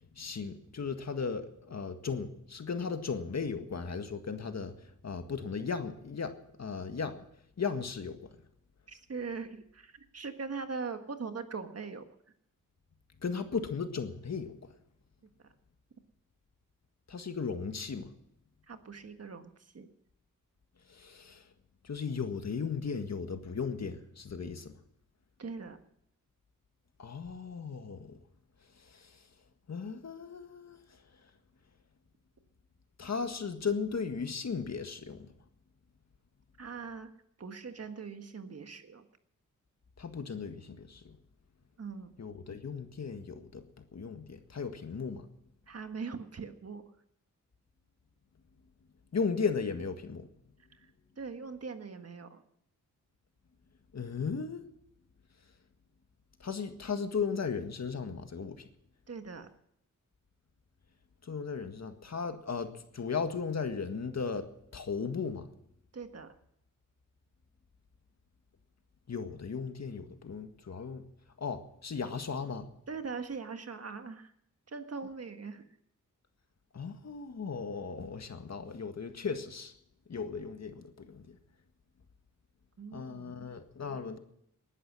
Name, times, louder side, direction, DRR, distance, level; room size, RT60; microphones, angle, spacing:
voice 1, 0.2-4.7 5.0-6.3 6.6-7.2 7.6-8.3 13.2-14.6 17.1-18.1 20.9-21.4 21.8-24.7 27.0-28.2 29.7-30.8 33.0-35.2 40.0-41.0 42.2-43.6 43.9-45.3 49.1-50.3 53.9-54.6 56.4-58.6 61.3-65.5 69.1-71.0 71.4-72.7 76.7-79.7 80.1-81.4 82.9-84.2, left 5 dB, 55° left, 1.8 m, -36 dB
voice 2, 8.9-12.1 15.4-15.5 18.7-19.9 25.4-25.8 36.6-39.0 41.8-42.1 45.7-46.9 50.7-50.9 51.2-52.4 59.1-59.5 65.9-66.4 72.9-74.3 74.7-75.6 82.8-83.5, right 5 dB, 50° right, 1.6 m, -41 dB
19.5 x 11.0 x 6.2 m
wide cardioid pair, 90°, 32 cm